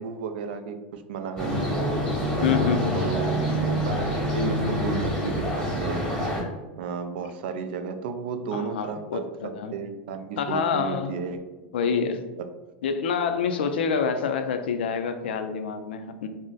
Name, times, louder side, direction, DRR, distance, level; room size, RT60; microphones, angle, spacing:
voice 1, 0.0-1.9 2.4-6.0 6.8-11.4 12.4-12.5, right 5 dB, 75° right, 8 dB, 0.3 m, -33 dB
sound 1, 1.4-6.4, equal, 10° left, 0.8 m, -26 dB
voice 2, 2.4-3.0 8.5-9.8 10.4-11.1 11.7-12.3 12.8-16.3, left 6 dB, 85° left, 8 dB, 0.3 m, -27 dB
2.5 x 2.1 x 3.8 m, 1.1 s
supercardioid pair, 130°, 5 cm